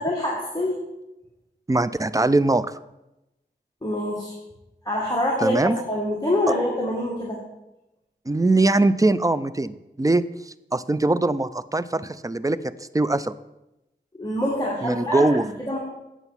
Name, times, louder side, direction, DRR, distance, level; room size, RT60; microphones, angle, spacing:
voice 1, 0.0-0.8 3.8-4.3 4.9-7.4 14.2-15.8, left 1 dB, 20° left, -3 dB, 2.0 m, -25 dB
voice 2, 1.7-2.7 5.4-5.8 6.5-6.6 8.3-13.3 14.8-15.4, right 2 dB, 20° right, 15 dB, 0.4 m, -22 dB
8.1 x 7.9 x 5.7 m, 0.94 s
wide cardioid pair, 60°, 19 cm